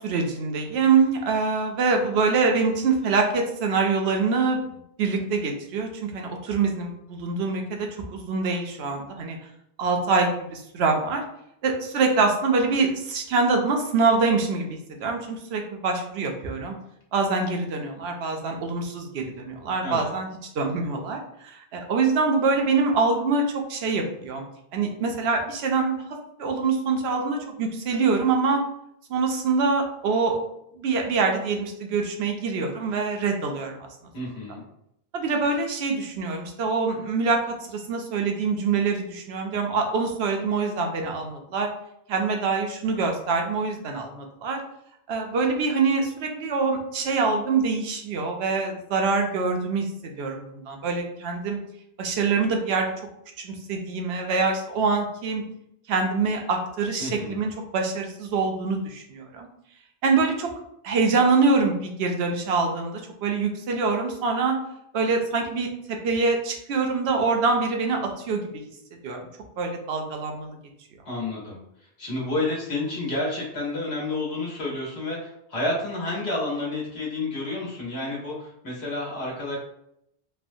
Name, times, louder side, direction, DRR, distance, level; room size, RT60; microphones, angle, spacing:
voice 1, 0.0-9.4 9.8-11.2 11.6-16.7 17.1-24.4 24.7-26.0 26.4-28.6 29.1-30.4 30.8-33.8 35.1-41.7 42.1-44.6 45.1-51.6 52.0-52.9 53.4-55.4 55.9-59.5 60.0-60.5 60.8-64.6 64.9-65.7 66.0-68.6 69.0-69.2 69.6-70.5, right 4 dB, 85° right, 3 dB, 0.8 m, -25 dB
voice 2, 34.1-34.6 57.0-57.4 71.1-71.6 72.0-79.6, left 2 dB, 75° left, -4 dB, 1.3 m, -30 dB
3.2 x 2.1 x 2.6 m, 0.76 s
omnidirectional pair, 1.1 m